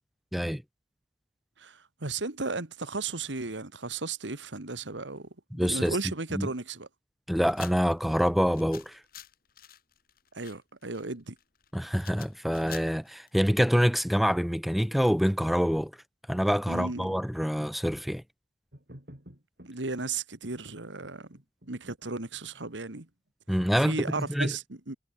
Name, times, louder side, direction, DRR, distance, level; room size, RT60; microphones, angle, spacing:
voice 1, 1.6-6.9 10.3-11.4 16.7-17.1 19.7-21.3 21.7-23.1 23.8-25.0, right 3 dB, 80° right, 2.0 m, -35 dB
voice 2, 5.5-6.0 6.3-6.5 7.3-9.0 11.7-15.9 16.3-18.2 23.5-24.5, equal, ahead, 0.7 m, -26 dB
sound 1, 7.5-13.8, left 11 dB, 50° left, 3.0 m, -49 dB
sound 2, 18.7-19.8 20.4-20.6 21.0-23.1, equal, 55° right, 4.0 m, -52 dB
head